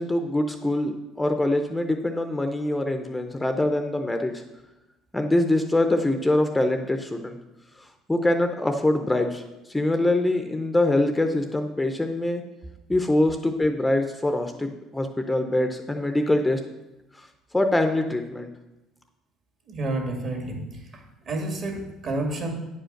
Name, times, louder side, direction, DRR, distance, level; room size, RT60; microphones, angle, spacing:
voice 1, 0.0-4.4 5.1-7.4 7.8-9.4 9.7-12.4 12.9-16.6 17.2-17.3 17.5-18.5, left 1 dB, 10° left, 6 dB, 0.6 m, -24 dB
voice 2, 19.7-20.7 21.3-22.5, right 2 dB, 45° right, 2 dB, 2.2 m, -29 dB
9.6 x 5.1 x 6.4 m, 0.99 s
cardioid pair, 115°, 0 cm